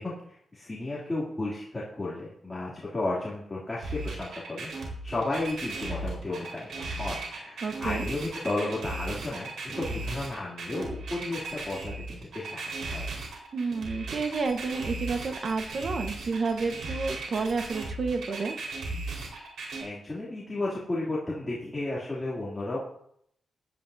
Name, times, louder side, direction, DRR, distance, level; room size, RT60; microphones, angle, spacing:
voice 1, 0.0-13.1 19.8-22.8, left 2 dB, 20° left, -7 dB, 2.8 m, -33 dB
sound 1, 3.8-19.8, right 2 dB, 90° right, 4.6 m, -36 dB
voice 2, 7.6-8.1 13.5-18.6, right 4 dB, 55° right, 5 dB, 1.3 m, -30 dB
18.5 x 11.0 x 2.8 m, 0.70 s
cardioid pair, 110°, 0 cm